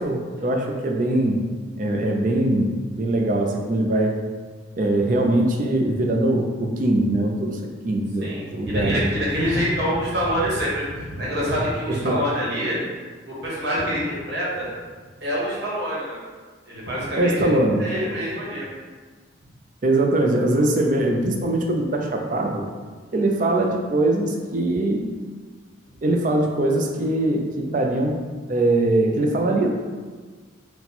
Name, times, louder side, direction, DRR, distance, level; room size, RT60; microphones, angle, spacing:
voice 1, 0.0-1.4 1.8-4.2 4.8-7.6 7.8-9.1 11.9-12.2 17.2-17.8 19.8-22.7 23.1-25.1 26.0-28.2 28.5-29.7, right 1 dB, 40° right, 2 dB, 0.4 m, -22 dB
voice 2, 8.2-12.8 13.3-14.7 15.2-16.2 16.7-18.7, equal, 60° right, -6 dB, 1.2 m, -26 dB
4.2 x 2.2 x 4.1 m, 1.5 s
head